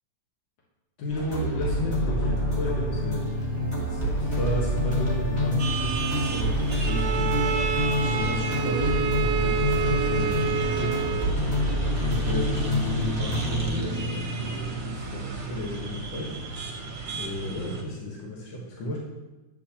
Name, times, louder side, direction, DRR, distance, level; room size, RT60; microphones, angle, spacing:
voice 1, 1.0-3.6 3.9-7.4 8.0-16.6 17.1-19.0, left 1 dB, 70° left, -4 dB, 2.1 m, -34 dB
sound 1, 1.1-13.7, equal, 25° left, 2.0 m, -26 dB
sound 2, 5.6-17.8, right 3 dB, 40° right, 0.8 m, -34 dB
Bowed string instrument, 6.9-11.5, right 8 dB, 70° right, 1.1 m, -29 dB
9.3 x 8.2 x 2.9 m, 1.1 s
omnidirectional pair, 2.1 m